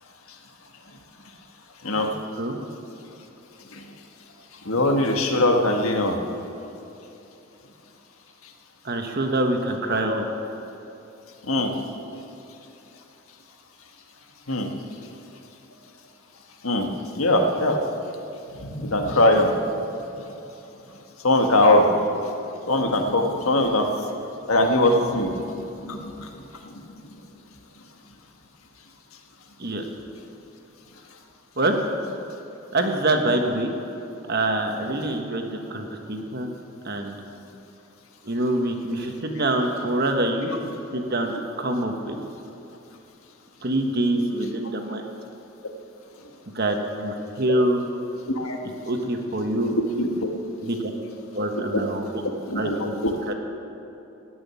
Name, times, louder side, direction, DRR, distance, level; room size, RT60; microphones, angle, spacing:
voice 1, 4.7-6.2 11.5-11.7 14.5-14.7 16.6-16.9 17.2-17.8 18.8-19.5 21.2-21.9 22.7-23.9 24.5-25.4 25.9-26.0 35.0-35.1 48.4-48.6 49.7-50.3 51.5-51.8 52.5-53.1, left 1 dB, 85° left, 3 dB, 1.5 m, -21 dB
voice 2, 8.8-10.3 29.6-29.8 31.6-31.7 32.7-33.8 34.3-36.5 36.8-37.1 38.2-40.5 40.9-42.1 43.6-45.1 46.5-47.8 48.9-49.8 50.6-50.9 51.3-52.0 52.5-52.9 53.3-53.4, right 1 dB, 50° right, 4 dB, 1.3 m, -25 dB
17.5 x 6.3 x 9.5 m, 2.9 s
head